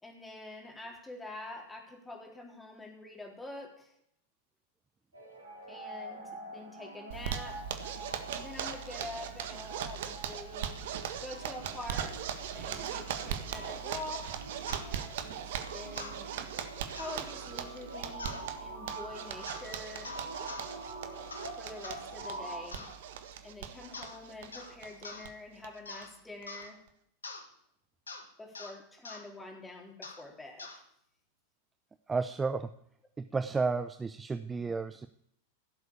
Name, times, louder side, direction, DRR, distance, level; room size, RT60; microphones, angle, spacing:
voice 1, 0.0-4.0 5.7-7.8 8.3-10.8 11.2-15.5 15.7-16.3 17.0-20.2 21.6-22.9 23.4-26.8 28.4-30.8, left 2 dB, 10° left, 1 dB, 4.1 m, -46 dB
sound 1, 5.1-22.7, right 2 dB, 80° right, 3.9 m, -46 dB
Zipper (clothing), 7.1-25.3 25.6-25.7 26.0-26.1 26.4-26.9, right 9 dB, 55° right, 1.5 m, -40 dB
sound 2, 14.7-14.9 16.0-16.2 16.9-17.2 18.2-18.5 19.5-19.7 20.0-20.7 21.3-21.5 21.8-22.0 22.7-23.0 23.9-24.2 24.5-24.7 25.0-25.3 25.9-26.1 26.5-26.7 27.2-27.4 28.1-28.2 28.5-28.7 29.0-29.2 30.0-30.2 30.6-30.8, left 3 dB, 75° left, 2.1 m, -44 dB
voice 2, 32.1-32.7 33.2-35.1, right 4 dB, 15° right, 11 dB, 0.6 m, -32 dB
16.5 x 7.9 x 8.5 m, 0.71 s
figure-of-eight pair, 90°, 0 cm